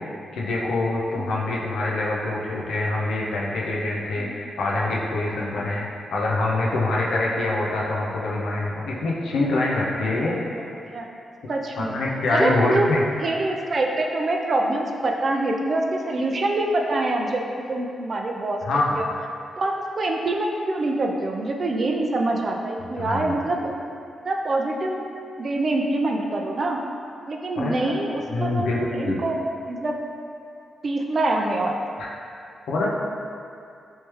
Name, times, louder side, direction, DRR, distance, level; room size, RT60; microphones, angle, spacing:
voice 1, 0.0-5.8 6.1-10.3 11.8-13.0 18.7-19.0 23.0-23.4 27.6-27.7 28.3-29.2 32.7-32.9, left 2 dB, 85° left, -4 dB, 0.5 m, -25 dB
voice 2, 10.3-11.1 11.5-12.0 12.3-12.9 13.2-17.4 17.7-18.6 18.9-19.1 19.6-23.7 24.2-25.0 25.4-26.8 27.3-29.4 29.7-30.0 30.8-31.7, right 2 dB, 50° right, 1 dB, 0.4 m, -25 dB
3.2 x 3.2 x 3.0 m, 2.5 s
cardioid pair, 60°, 0 cm